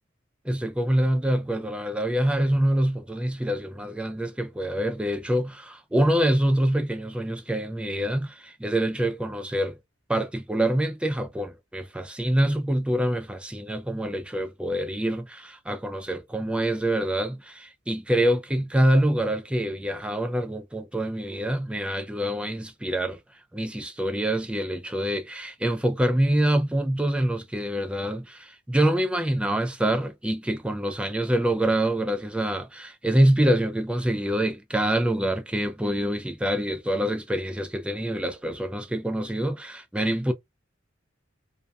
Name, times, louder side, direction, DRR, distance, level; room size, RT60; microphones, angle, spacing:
voice 1, 0.4-9.8 10.1-23.2 23.5-40.3, right 1 dB, 5° right, 0.4 m, -25 dB
2.6 x 2.2 x 2.3 m
head